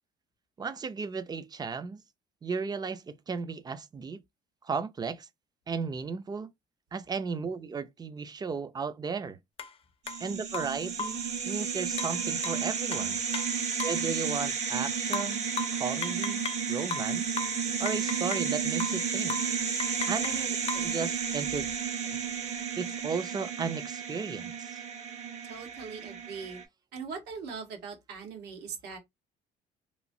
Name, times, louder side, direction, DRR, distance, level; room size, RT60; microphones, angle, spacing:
voice 1, 0.6-2.0 2.4-4.2 4.6-5.3 5.7-6.5 6.9-9.4 10.2-13.2 13.8-17.3 17.8-19.4 20.1-21.7 22.0-22.2 22.8-24.8, right 5 dB, 25° right, 0.4 m, -35 dB
sound 1, 9.6-9.7 10.1-10.2 10.5-11.3 12.0-14.1 15.1-16.7 16.9-18.5 18.8-19.0 19.3-19.5 19.8-20.9, left 5 dB, 35° left, 0.5 m, -37 dB
sound 2, 10.0-26.6, right 6 dB, 45° right, 0.9 m, -32 dB
voice 2, 25.4-26.6 26.9-29.0, right 5 dB, 80° right, 1.3 m, -41 dB
3.0 x 2.3 x 2.6 m
cardioid pair, 110°, 17 cm